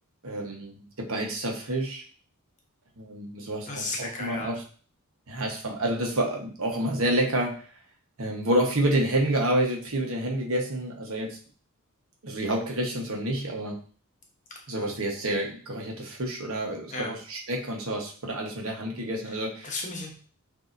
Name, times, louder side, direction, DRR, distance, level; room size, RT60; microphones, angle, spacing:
voice 1, 0.2-2.0 3.0-4.6 5.3-7.5 8.2-11.4 12.2-13.8 14.7-19.7, right 1 dB, 70° right, 1 dB, 1.1 m, -28 dB
voice 2, 3.7-4.6 14.8-14.9 16.9-17.1 19.6-20.1, left 2 dB, 35° left, 0 dB, 0.8 m, -34 dB
6.6 x 2.8 x 2.6 m, 0.41 s
head